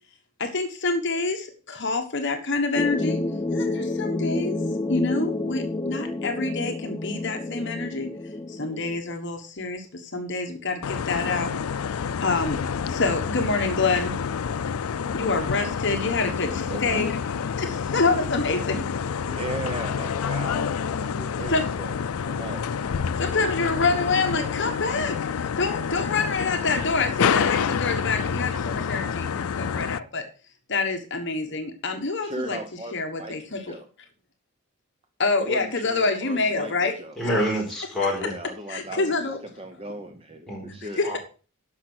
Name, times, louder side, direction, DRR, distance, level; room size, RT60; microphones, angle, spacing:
voice 1, 0.4-3.2 3.5-4.6 4.9-8.1 8.5-11.5 11.9-12.6 12.9-14.1 15.1-17.1 17.6-18.9 21.5-21.6 23.1-30.2 30.7-32.6 32.9-33.8 35.2-36.9 38.7-39.4 40.8-41.2, left 3 dB, 55° left, 5 dB, 1.4 m, -27 dB
sound 1, 2.8-9.0, left 2 dB, 15° left, 0.5 m, -29 dB
sound 2, 10.8-30.0, left 6 dB, 80° left, 0.4 m, -28 dB
voice 2, 16.7-17.0 19.2-22.0 22.3-22.6 32.2-33.4 33.7-33.9 35.4-37.1 38.2-39.3 39.6-41.0, right 2 dB, 25° right, 6 dB, 1.0 m, -37 dB
voice 3, 37.2-38.3 40.5-40.8 41.0-41.2, equal, ahead, -4 dB, 4.3 m, -26 dB
10.5 x 6.4 x 6.2 m, 0.37 s
head